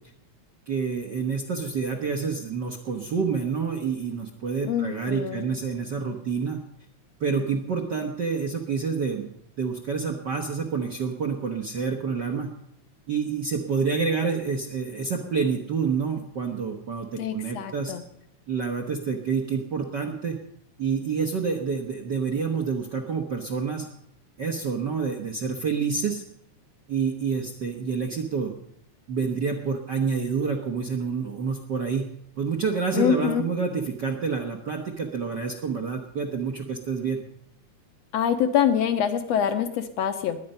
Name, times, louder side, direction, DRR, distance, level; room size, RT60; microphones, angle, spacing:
voice 1, 0.7-6.6 7.2-9.3 9.6-12.5 13.1-17.9 18.5-20.4 20.8-23.9 24.4-26.2 26.9-28.5 29.1-32.0 32.4-37.2, right 5 dB, 60° right, 2 dB, 1.2 m, -28 dB
voice 2, 4.7-5.5 17.2-18.0 32.9-33.4 38.1-40.4, left 9 dB, 70° left, 7 dB, 1.9 m, -25 dB
21.0 x 9.2 x 5.5 m, 0.74 s
omnidirectional pair, 3.5 m